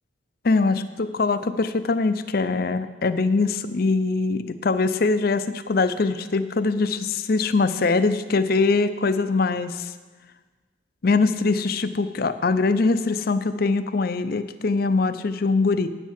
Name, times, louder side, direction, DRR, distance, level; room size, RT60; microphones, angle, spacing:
voice 1, 0.4-9.9 11.0-15.9, left 3 dB, 50° left, 11 dB, 0.5 m, -22 dB
9.1 x 7.3 x 7.4 m, 1.3 s
head